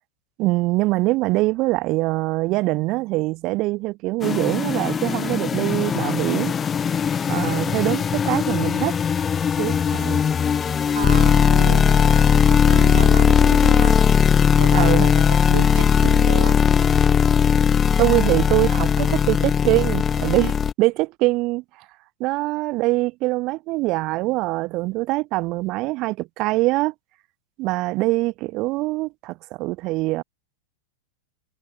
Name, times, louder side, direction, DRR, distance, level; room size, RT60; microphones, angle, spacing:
voice 1, 0.4-6.5 7.3-9.0 9.6-10.3 14.7-15.1 18.0-21.6 22.2-26.9 27.6-30.2, right 21 dB, 40° right, 6.9 m, -23 dB
sound 1, 4.2-20.7, left 7 dB, 20° left, 0.6 m, -18 dB
voice 2, 10.9-14.0 14.6-16.6, right 11 dB, 60° right, 4.5 m, -32 dB
figure-of-eight pair, 90°, 0 cm